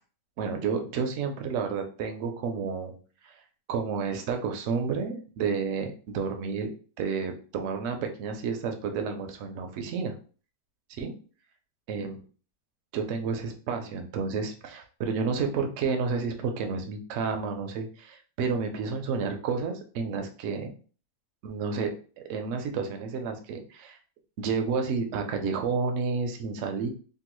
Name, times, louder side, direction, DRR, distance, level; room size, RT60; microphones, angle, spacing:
voice 1, 0.4-3.0 3.7-6.7 7.0-10.1 11.0-11.1 11.9-12.2 12.9-20.7 21.4-24.0 24.4-26.9, right 5 dB, 75° right, 5 dB, 0.7 m, -30 dB
2.9 x 2.2 x 3.0 m, 0.39 s
omnidirectional pair, 1.8 m